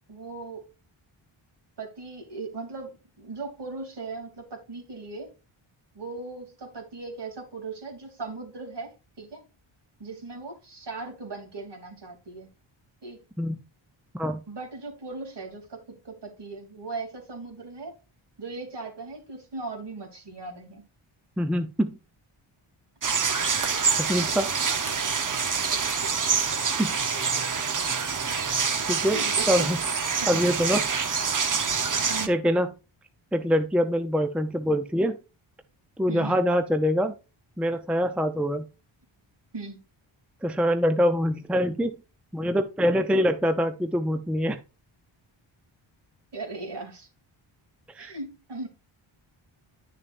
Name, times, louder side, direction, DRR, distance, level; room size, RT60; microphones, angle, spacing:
voice 1, 0.1-0.7 1.8-5.3 5.9-8.9 9.2-9.4 10.0-12.5 13.0-13.2 14.5-17.9 18.4-20.8 23.6-23.8 27.1-27.4 29.1-29.7 30.2-30.4 32.1-32.3 36.1-36.4 39.5-39.8 46.3-47.1 48.0-48.7, right 3 dB, 55° right, 3.1 m, -38 dB
voice 2, 21.4-22.0 24.0-24.5 26.7-27.0 28.9-29.2 29.5-29.8 30.3-30.9 32.3-32.7 33.3-35.2 36.0-37.1 37.6-38.7 40.4-41.9 42.3-44.6 47.9-48.1, equal, ahead, 0.6 m, -24 dB
sound 1, 23.0-32.3, right 5 dB, 40° right, 1.0 m, -26 dB
10.5 x 6.7 x 2.5 m
wide cardioid pair, 105°, 49 cm